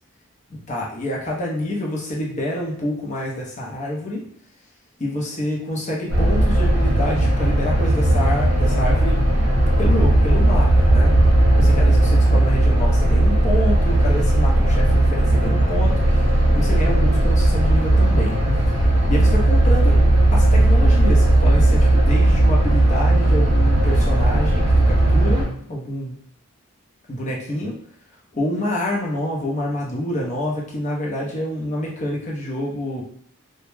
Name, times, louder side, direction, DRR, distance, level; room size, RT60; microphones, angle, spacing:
voice 1, 0.5-4.3 5.0-9.2 9.5-11.1 11.6-18.7 19.1-20.0 20.3-26.1 27.1-27.8 28.3-33.0, left 1 dB, 35° left, -3 dB, 0.6 m, -27 dB
sound 1, 6.1-25.5, right 1 dB, 50° right, 0.8 m, -16 dB
2.1 x 2.0 x 3.1 m, 0.62 s
head